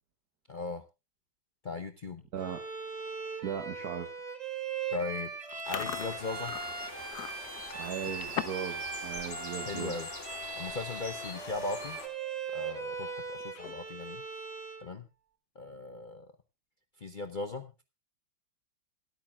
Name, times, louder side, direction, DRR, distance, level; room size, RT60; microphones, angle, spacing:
voice 1, 0.5-0.8 1.6-2.2 4.9-5.3 5.7-6.5 9.6-10.1 10.6-12.0 12.5-14.2 14.8-15.1 15.6-16.3 17.0-17.8, left 3 dB, 85° left, 9 dB, 0.4 m, -38 dB
Bowed string instrument, 2.4-14.9, right 5 dB, 20° right, 1.6 m, -39 dB
voice 2, 3.4-4.1 7.7-9.9, right 8 dB, 55° right, 6 dB, 1.6 m, -37 dB
Chewing mastication, 5.5-8.7 9.0-9.4 9.8-10.0 10.8-10.9 11.1-11.4 11.9-12.0 13.4-14.0, left 10 dB, 60° left, 1.3 m, -40 dB
sound 1, 5.6-12.1, left 2 dB, 35° left, 2.9 m, -44 dB
26.5 x 8.9 x 2.3 m, 0.26 s
omnidirectional pair, 2.1 m